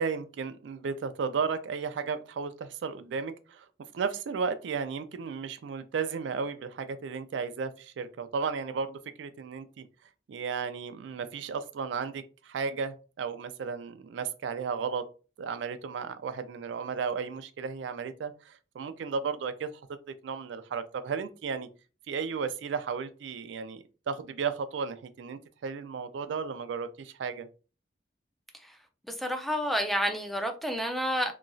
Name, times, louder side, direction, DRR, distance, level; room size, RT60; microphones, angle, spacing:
voice 1, 0.0-3.7 3.9-9.9 10.3-15.1 15.4-19.7 20.2-21.7 22.1-27.5, right 5 dB, 85° right, 0.3 m, -34 dB
voice 2, 29.1-31.3, equal, ahead, 0.4 m, -29 dB
2.9 x 2.3 x 2.5 m
head